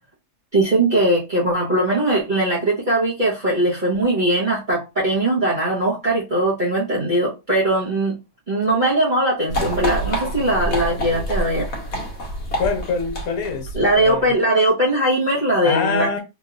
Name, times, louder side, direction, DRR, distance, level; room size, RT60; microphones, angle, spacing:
voice 1, 0.5-8.1 8.5-11.7 13.7-16.2, right 1 dB, 35° right, 0.9 m, -20 dB
sound 1, 9.5-14.2, right 1 dB, 50° left, 1.1 m, -27 dB
voice 2, 12.4-14.3 15.6-16.2, left 5 dB, 65° left, 1.3 m, -25 dB
3.1 x 2.9 x 2.3 m
omnidirectional pair, 1.7 m